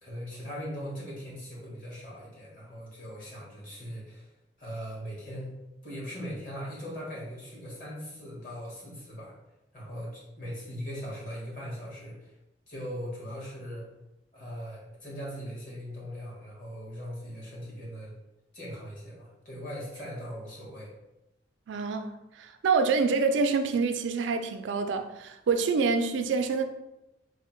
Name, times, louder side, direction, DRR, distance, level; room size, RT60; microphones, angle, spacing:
voice 1, 0.0-4.3 4.6-5.5 5.8-9.3 9.7-12.3 12.7-13.9 14.3-18.1 18.5-20.9, equal, 50° left, 1.4 m, -40 dB
voice 2, 21.7-22.1 22.4-26.6, right 4 dB, 75° right, 0.3 m, -26 dB
3.4 x 2.1 x 4.3 m
head